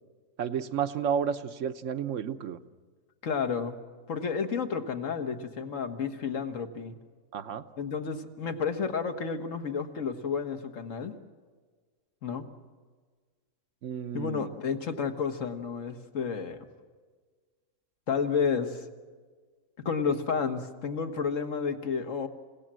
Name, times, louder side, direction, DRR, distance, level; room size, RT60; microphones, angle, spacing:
voice 1, 0.4-2.6 7.3-7.6 13.8-14.5, right 7 dB, 70° right, 10 dB, 1.2 m, -31 dB
voice 2, 3.2-3.8 4.1-7.0 7.8-11.1 12.2-12.5 14.1-16.7 18.1-18.9 19.9-22.3, left 6 dB, 70° left, 7 dB, 1.7 m, -31 dB
29.0 x 17.0 x 7.5 m, 1.5 s
omnidirectional pair, 1.4 m